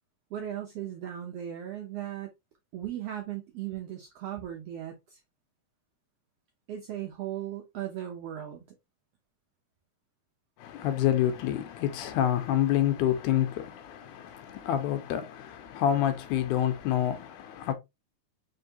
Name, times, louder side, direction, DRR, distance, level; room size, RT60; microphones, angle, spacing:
voice 1, 0.3-2.3 2.7-5.2 6.7-8.6, right 11 dB, 80° right, 1.4 m, -37 dB
voice 2, 10.6-17.7, left 11 dB, 80° left, 2.1 m, -28 dB
4.6 x 3.4 x 2.7 m
omnidirectional pair, 3.6 m